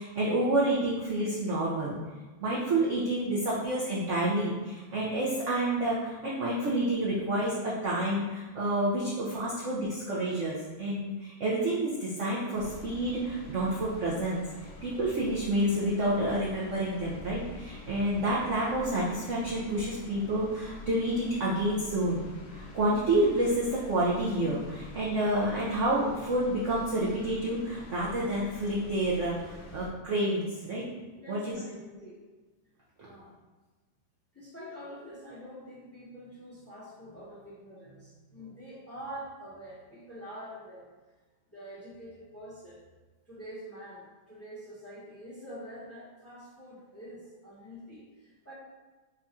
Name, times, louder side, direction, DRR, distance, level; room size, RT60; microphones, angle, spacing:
voice 1, 0.0-1.9 2.4-14.4 14.8-22.2 22.5-30.8 31.3-31.6, right 1 dB, 75° right, -6 dB, 0.6 m, -29 dB
sound 1, 12.5-29.9, left 1 dB, 70° left, 0.9 m, -46 dB
voice 2, 31.2-32.2 33.0-33.3 34.3-40.9 41.5-42.8 43.3-48.5, equal, 10° left, -8 dB, 0.8 m, -46 dB
3.8 x 2.3 x 4.2 m, 1.3 s
omnidirectional pair, 2.1 m